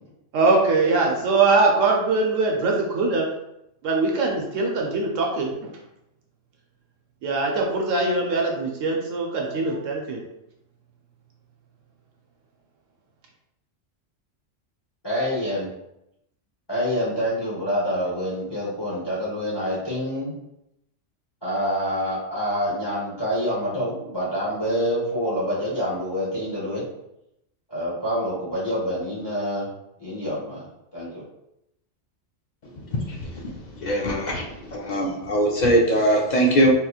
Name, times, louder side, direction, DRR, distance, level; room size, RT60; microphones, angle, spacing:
voice 1, 0.3-3.3 3.8-5.7 7.2-10.2, right 3 dB, 80° right, 0 dB, 1.0 m, -22 dB
voice 2, 15.0-15.7 16.7-20.4 21.4-26.9 27.7-29.7 30.0-30.7 30.9-31.2, equal, 25° left, -7 dB, 0.8 m, -26 dB
voice 3, 33.8-34.4 34.7-36.7, right 1 dB, 60° left, -1 dB, 0.4 m, -20 dB
3.7 x 2.9 x 2.3 m, 0.83 s
omnidirectional pair, 1.3 m